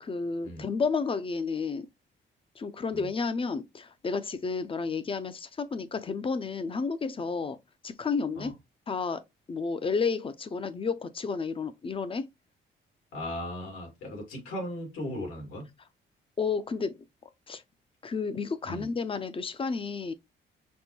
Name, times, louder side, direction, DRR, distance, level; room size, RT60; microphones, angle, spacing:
voice 1, 0.0-1.9 2.6-7.6 7.8-8.5 8.9-9.2 9.5-12.3 16.4-17.0 17.5-17.6 18.0-20.1, left 4 dB, 25° left, 0.5 m, -31 dB
voice 2, 13.1-15.7 18.7-18.9, left 1 dB, 90° left, 2.2 m, -37 dB
5.2 x 2.1 x 3.0 m
cardioid pair, 90°, 20 cm